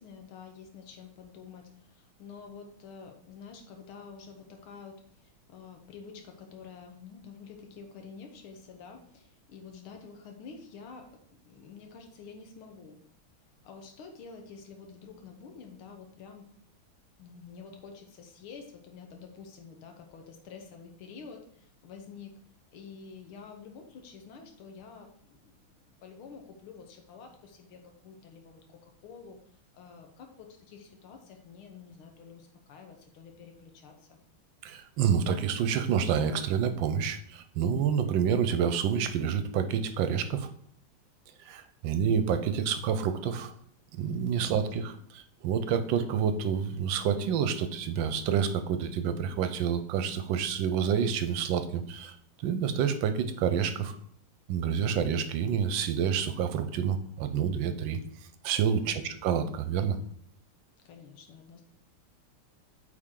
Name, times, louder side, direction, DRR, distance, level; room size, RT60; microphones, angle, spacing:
voice 1, 0.0-11.1 11.4-13.0 13.6-16.5 17.2-22.3 22.7-34.2 44.5-44.9 58.8-59.1 60.9-61.6, left 5 dB, 80° left, 3 dB, 1.9 m, -49 dB
voice 2, 34.6-40.5 41.5-43.5 43.9-52.1 52.4-54.0 54.5-58.0 58.4-60.0, right 7 dB, 70° right, 9 dB, 1.3 m, -28 dB
8.5 x 4.7 x 3.8 m, 0.63 s
omnidirectional pair, 2.3 m